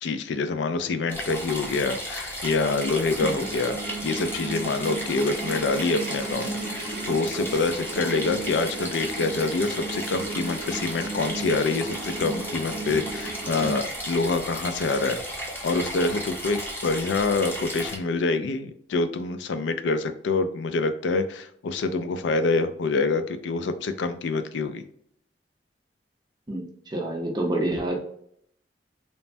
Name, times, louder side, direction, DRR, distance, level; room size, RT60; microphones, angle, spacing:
voice 1, 0.0-15.2 15.6-24.8, left 3 dB, 85° left, 9 dB, 0.4 m, -26 dB
sound 1, 1.1-18.0, equal, 10° left, 0.6 m, -34 dB
sound 2, 3.4-13.8, right 3 dB, 65° right, 0.7 m, -35 dB
voice 2, 26.5-27.9, right 1 dB, 25° right, 0 dB, 0.6 m, -28 dB
3.2 x 2.1 x 2.5 m, 0.67 s
head